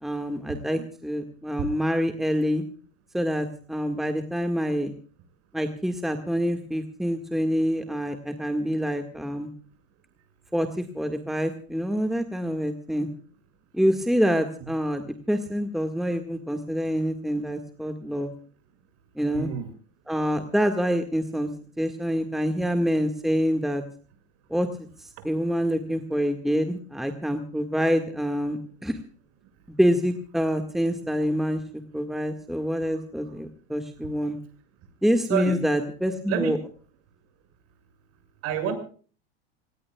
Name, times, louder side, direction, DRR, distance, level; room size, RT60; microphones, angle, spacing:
voice 1, 0.0-2.6 3.1-4.9 5.5-9.5 10.5-13.1 13.7-18.3 19.2-19.5 20.1-21.5 21.8-23.8 24.5-24.7 25.0-29.0 29.7-34.4 35.0-36.6, equal, ahead, 6 dB, 1.8 m, -26 dB
voice 2, 19.3-19.7 35.3-35.5 36.3-36.5 38.4-38.7, right 8 dB, 45° right, 8 dB, 6.6 m, -27 dB
27.5 x 19.0 x 2.4 m, 0.41 s
supercardioid pair, 125°, 33 cm